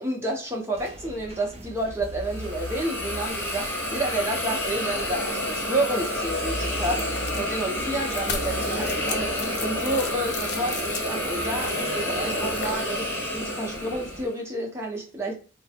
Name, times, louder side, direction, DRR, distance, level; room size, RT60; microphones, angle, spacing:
voice 1, 0.0-9.3 9.6-15.4, right 1 dB, 15° right, 0.8 m, -30 dB
sound 1, 0.7-14.2, right 1 dB, 35° right, 0.5 m, -38 dB
Hiss, 2.2-14.3, left 1 dB, 10° left, 0.9 m, -29 dB
sound 2, 6.7-12.7, left 5 dB, 65° left, 0.6 m, -37 dB
3.3 x 2.2 x 2.8 m
head